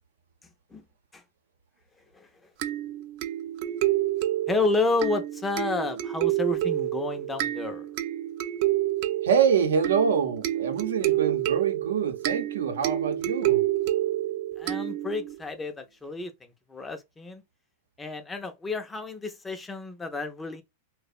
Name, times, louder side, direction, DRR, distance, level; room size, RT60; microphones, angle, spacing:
sound 1, 2.6-15.4, right 14 dB, 50° right, 0.3 m, -28 dB
voice 1, 4.5-7.9 14.6-17.4 18.0-20.6, left 3 dB, 10° left, 0.4 m, -30 dB
voice 2, 9.2-13.6, right 7 dB, 90° right, 0.6 m, -25 dB
2.6 x 2.0 x 2.3 m
supercardioid pair, 135°, 0 cm